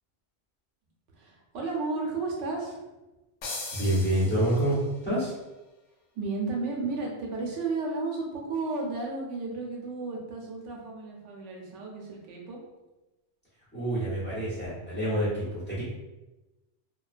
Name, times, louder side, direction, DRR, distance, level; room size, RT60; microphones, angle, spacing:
voice 1, 1.1-2.8 6.1-12.6, right 3 dB, 85° right, -1 dB, 0.9 m, -33 dB
sound 1, 3.4-5.0, left 3 dB, 75° left, 0.9 m, -39 dB
voice 2, 3.7-4.8 5.0-5.3 13.7-15.8, right 1 dB, 10° left, -10 dB, 0.9 m, -27 dB
2.3 x 2.2 x 2.4 m, 1.0 s
omnidirectional pair, 1.2 m